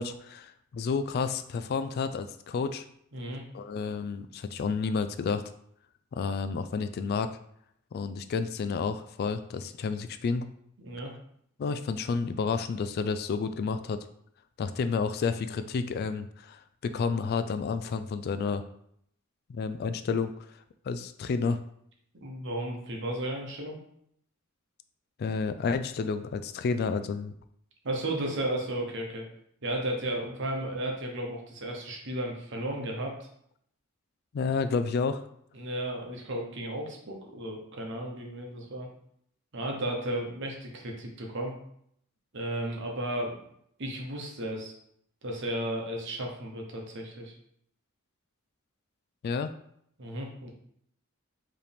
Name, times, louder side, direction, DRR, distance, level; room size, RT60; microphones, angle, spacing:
voice 1, 0.0-2.8 3.5-5.4 6.1-7.3 7.9-10.5 11.6-14.0 14.6-18.7 19.5-20.3 20.9-21.6 25.2-27.3 34.3-35.2 49.2-49.5, left 5 dB, 50° left, 10 dB, 0.3 m, -30 dB
voice 2, 3.1-3.4 10.8-11.1 22.2-23.8 27.8-29.3 29.6-33.3 35.5-38.9 39.5-41.5 42.3-43.4 43.8-44.7 45.2-47.3 50.0-50.5, right 1 dB, 60° right, 1 dB, 1.0 m, -34 dB
4.7 x 3.1 x 3.5 m, 0.69 s
head